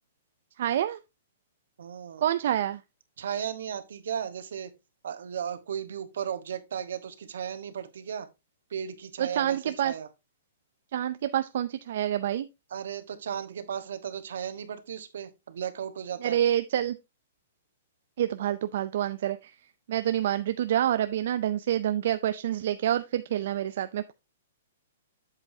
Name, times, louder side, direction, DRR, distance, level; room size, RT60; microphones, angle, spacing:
voice 1, 0.6-1.0 2.2-2.8 9.2-9.9 10.9-12.5 16.2-17.0 18.2-19.5 19.9-24.1, right 11 dB, 50° right, 0.4 m, -27 dB
voice 2, 1.8-2.2 3.2-4.7 5.0-8.3 8.7-10.1 12.7-16.4, right 8 dB, 65° right, 1.2 m, -35 dB
8.0 x 7.5 x 2.7 m
hypercardioid pair, 175°, 0 cm